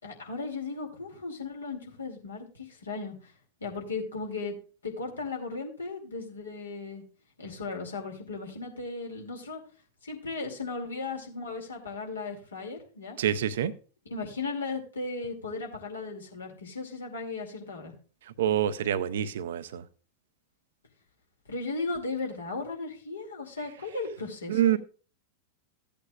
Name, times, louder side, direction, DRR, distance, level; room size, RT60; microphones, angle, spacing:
voice 1, 0.0-3.1 3.6-4.6 4.8-7.0 7.4-9.6 10.0-13.2 14.0-17.9 21.5-24.8, left 3 dB, 75° left, 2.5 m, -36 dB
voice 2, 13.2-13.7 18.4-19.8 24.5-24.8, right 10 dB, 60° right, 0.6 m, -26 dB
15.5 x 8.5 x 2.4 m
figure-of-eight pair, 90°, 0 cm